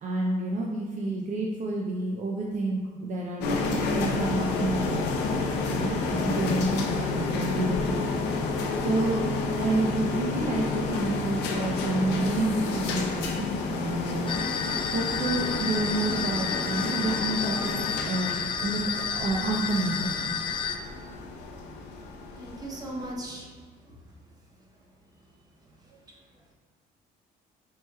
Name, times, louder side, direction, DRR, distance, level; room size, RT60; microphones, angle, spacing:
voice 1, 0.0-8.0 8.8-9.2 9.6-14.3 14.9-20.4, right 2 dB, 45° right, -2 dB, 0.5 m, -29 dB
sound 1, 3.4-23.1, left 3 dB, 90° left, 0.5 m, -30 dB
sound 2, 14.3-20.8, left 7 dB, 30° left, 0.4 m, -31 dB
voice 2, 22.4-23.5 23.8-24.0 25.9-26.2, right 1 dB, 20° right, -1 dB, 0.8 m, -39 dB
4.7 x 4.1 x 2.3 m, 1.5 s
cardioid pair, 110°, 17 cm